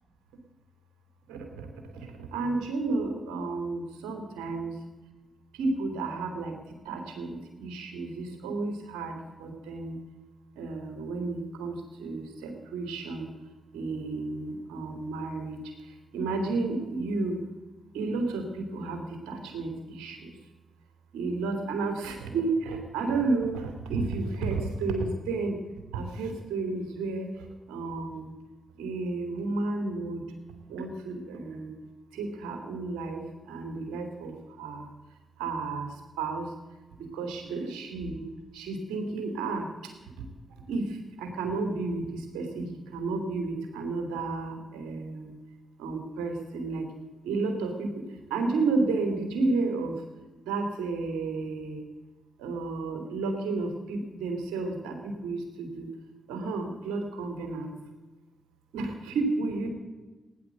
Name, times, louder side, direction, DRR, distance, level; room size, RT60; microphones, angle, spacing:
voice 1, 1.3-1.7 2.3-4.7 5.6-6.5 6.9-9.1 9.4-9.9 10.6-13.3 13.7-15.6 16.1-17.4 17.9-19.0 19.3-20.2 21.1-25.6 25.9-27.3 27.7-28.3 28.8-30.2 30.7-31.7 32.1-33.2 33.5-34.3 34.6-34.9 35.4-35.9 36.2-36.5 37.1-38.2 38.5-39.6 40.7-40.8 41.2-45.3 45.8-46.8 47.2-47.9 48.3-49.9 50.5-51.8 52.4-55.9 56.3-57.7 58.7-59.7, right 3 dB, 90° right, 4 dB, 2.8 m, -31 dB
17.5 x 10.5 x 7.8 m, 1.2 s
supercardioid pair, 40°, 0 cm